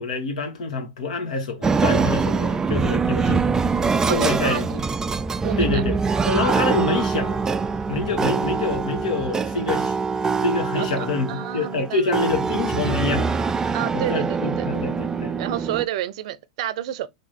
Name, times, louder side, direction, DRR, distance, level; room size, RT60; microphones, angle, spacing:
voice 1, 0.0-3.4 3.8-4.7 5.6-6.0 6.3-7.4 7.9-9.9 10.4-13.3 13.9-15.3, left 3 dB, 75° left, 1.4 m, -26 dB
sound 1, 1.6-15.9, right 5 dB, 15° right, 0.3 m, -24 dB
voice 2, 4.1-4.8 5.4-5.8 10.7-12.0 13.7-14.7 15.4-17.1, right 12 dB, 60° right, 0.6 m, -30 dB
3.4 x 3.0 x 4.2 m
hypercardioid pair, 100°, 4 cm